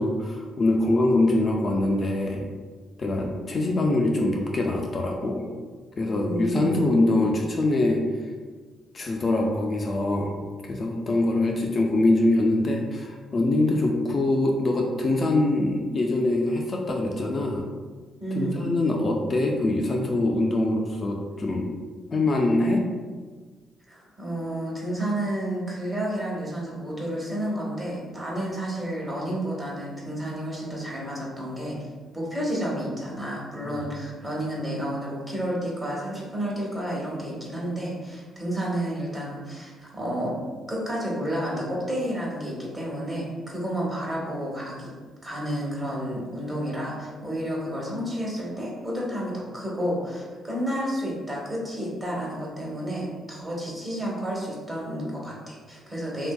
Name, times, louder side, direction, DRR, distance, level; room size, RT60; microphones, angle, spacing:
voice 1, 0.0-2.5 3.0-5.5 6.0-8.0 8.9-10.4 10.6-17.7 18.3-21.7 22.1-22.8 33.6-33.8, left 2 dB, 40° left, 1 dB, 0.3 m, -24 dB
voice 2, 6.0-7.0 18.2-18.7 23.9-31.8 32.1-40.4 40.7-44.9 45.2-56.3, right 1 dB, 20° right, -4 dB, 0.9 m, -31 dB
2.7 x 2.6 x 2.2 m, 1.4 s
cardioid pair, 90°, 0 cm